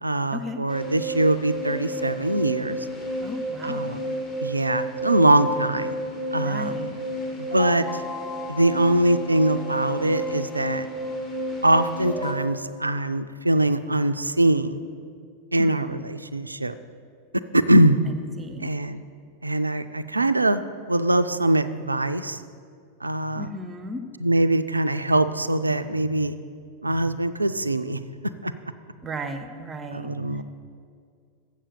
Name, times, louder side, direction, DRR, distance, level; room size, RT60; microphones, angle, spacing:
voice 1, 0.0-2.8 3.6-4.1 4.4-5.9 6.3-6.9 7.4-8.0 8.5-10.9 11.6-14.8 15.5-16.7 17.5-18.0 18.6-19.0 19.4-20.6 20.9-22.4 23.0-23.5 24.2-26.4 26.8-28.0 28.4-28.5 29.9-30.4, right 1 dB, 80° right, 12 dB, 0.3 m, -22 dB
sound 1, 0.7-12.3, equal, 30° left, 1.8 m, -31 dB
voice 2, 3.2-4.0 6.4-7.0 15.6-16.0 18.4-18.7 23.4-24.0 29.0-30.1, equal, 20° right, 8 dB, 0.6 m, -35 dB
7.4 x 7.2 x 6.8 m, 2.2 s
figure-of-eight pair, 90°, 0 cm